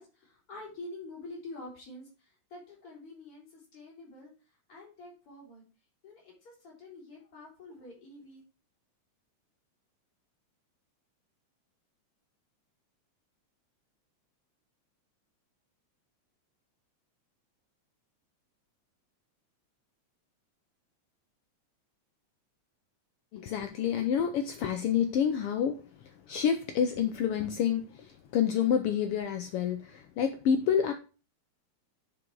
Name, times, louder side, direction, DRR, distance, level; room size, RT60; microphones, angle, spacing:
voice 1, 0.0-4.3 4.7-5.6 6.0-8.4, left 2 dB, 45° left, -3 dB, 4.7 m, -47 dB
voice 2, 23.3-30.9, left 8 dB, 80° left, 7 dB, 1.3 m, -28 dB
9.8 x 5.2 x 4.6 m, 0.33 s
omnidirectional pair, 3.4 m